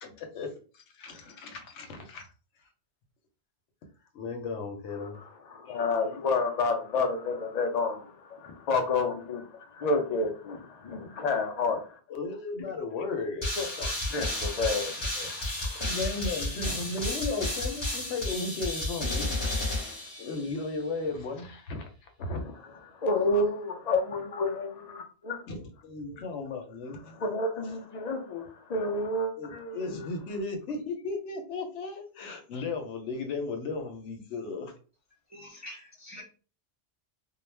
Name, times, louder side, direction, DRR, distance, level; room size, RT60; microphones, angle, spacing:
voice 1, 0.0-2.3 4.1-5.3 12.1-13.5 13.9-14.0 15.8-19.7 20.2-22.4 25.5-27.2 29.4-34.7, left 3 dB, 90° left, 0.9 m, -35 dB
voice 2, 5.5-11.9 13.6-15.9 22.9-25.4 26.2-26.3 27.2-30.1, left 3 dB, 50° left, 0.5 m, -30 dB
sound 1, 13.4-20.7, left 2 dB, 25° left, 0.9 m, -32 dB
voice 3, 35.3-36.2, left 1 dB, 25° right, 0.4 m, -45 dB
2.3 x 2.0 x 3.1 m
omnidirectional pair, 1.1 m